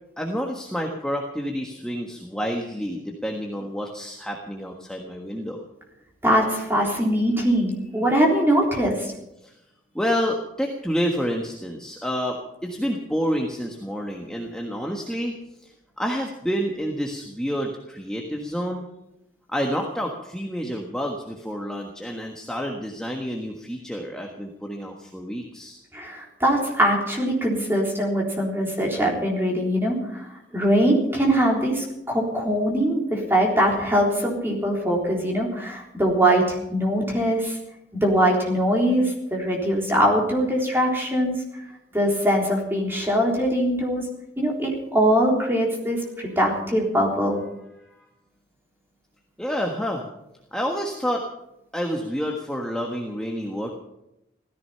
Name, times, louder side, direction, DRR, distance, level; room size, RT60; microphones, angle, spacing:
voice 1, 0.2-5.6 9.4-9.5 9.9-15.3 15.6-15.7 16.0-18.8 19.5-25.8 47.9-48.1 49.4-50.0 50.5-51.3 51.7-53.8, equal, 5° left, 0 dB, 1.4 m, -29 dB
voice 2, 6.2-9.1 25.9-30.3 30.5-37.6 37.9-41.4 41.9-44.0 44.4-47.4, equal, 10° right, -2 dB, 3.6 m, -22 dB
16.5 x 14.5 x 5.7 m, 0.85 s
head